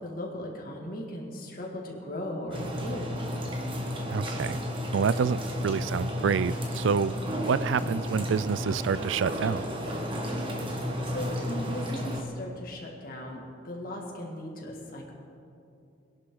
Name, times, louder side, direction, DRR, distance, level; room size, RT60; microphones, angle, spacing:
voice 1, 0.0-3.1 11.1-15.1, left 1 dB, 45° left, -1 dB, 2.3 m, -37 dB
sound 1, 2.5-12.2, equal, 25° right, 1.5 m, -33 dB
voice 2, 4.1-4.6 4.9-7.1 7.4-9.7, right 6 dB, 85° right, 17 dB, 0.4 m, -27 dB
21.5 x 11.0 x 3.9 m, 2.6 s
head